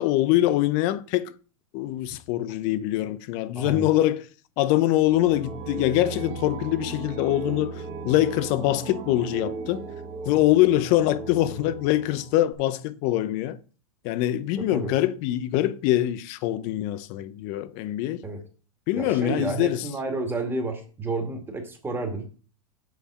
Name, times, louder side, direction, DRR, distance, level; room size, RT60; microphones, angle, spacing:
voice 1, 0.0-1.3 1.7-4.2 4.6-9.9 10.3-13.6 14.0-18.2 18.9-19.9, left 14 dB, 45° left, 0.7 m, -24 dB
voice 2, 3.6-3.9 14.6-14.9 18.2-18.4 19.0-22.2, right 3 dB, 15° right, 2.1 m, -30 dB
sound 1, 5.0-12.5, right 4 dB, 30° right, 1.3 m, -37 dB
7.3 x 5.3 x 5.7 m
hypercardioid pair, 115°, 18 cm